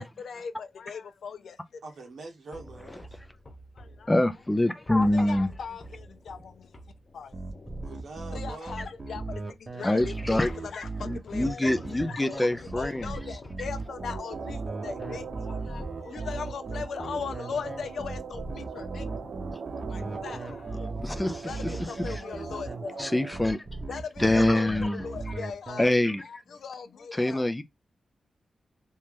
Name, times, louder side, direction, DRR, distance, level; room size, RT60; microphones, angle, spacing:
voice 1, 0.0-1.8 3.7-4.2 5.1-6.8 7.1-7.4 8.3-19.1 19.5-19.6 19.9-21.0 21.4-23.3 23.9-25.9 26.2-27.5, left 6 dB, 75° left, 0.6 m, -39 dB
voice 2, 1.8-3.2 7.8-8.8, right 3 dB, 75° right, 0.9 m, -44 dB
sound 1, 2.5-9.6 10.0-12.0 12.5-22.4, left 1 dB, 25° left, 1.0 m, -49 dB
voice 3, 4.1-5.5 9.8-10.5 11.0-13.1 21.0-21.5 23.0-23.6 24.2-25.0 25.8-26.2 27.1-27.6, left 1 dB, 10° left, 0.4 m, -25 dB
sound 2, 7.3-25.8, right 3 dB, 20° right, 0.8 m, -37 dB
sound 3, 13.9-23.4, right 6 dB, 60° right, 0.4 m, -41 dB
3.1 x 2.8 x 3.5 m
wide cardioid pair, 160°, 0 cm